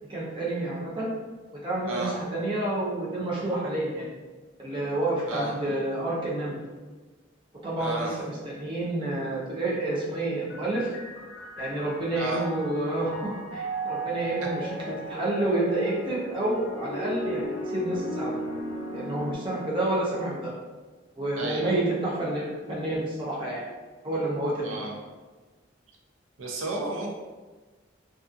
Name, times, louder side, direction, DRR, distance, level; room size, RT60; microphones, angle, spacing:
voice 1, 0.1-1.1 1.6-4.1 4.6-6.5 7.6-10.9 11.6-18.3 18.9-20.5 21.2-23.6 24.0-24.8, right 2 dB, 25° right, -6 dB, 0.6 m, -29 dB
voice 2, 1.8-2.2 5.3-5.5 7.8-8.1 12.1-12.4 21.4-21.7 24.6-24.9 26.4-27.2, right 2 dB, 90° right, -1 dB, 0.5 m, -32 dB
sound 1, 10.5-19.3, equal, 60° left, 0.6 m, -35 dB
2.4 x 2.4 x 2.4 m, 1.3 s
head